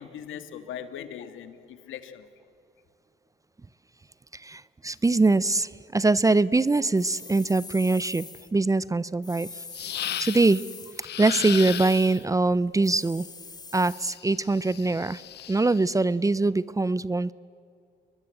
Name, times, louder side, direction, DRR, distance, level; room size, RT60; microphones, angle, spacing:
voice 1, 0.0-2.3, left 9 dB, 80° left, 10 dB, 1.9 m, -40 dB
voice 2, 4.3-8.3 8.5-9.6 10.2-10.6 11.2-13.3 13.7-15.2 15.5-17.3, right 3 dB, 15° right, 19 dB, 0.6 m, -23 dB
sound 1, 7.0-8.5 9.2-11.1 11.5-12.2 12.8-14.2, left 4 dB, 20° left, 0.7 m, -43 dB
sound 2, 9.7-10.6 11.0-12.3 13.9-15.8, left 12 dB, 55° left, 0.5 m, -35 dB
29.0 x 22.0 x 7.8 m, 2.4 s
cardioid pair, 90°, 20 cm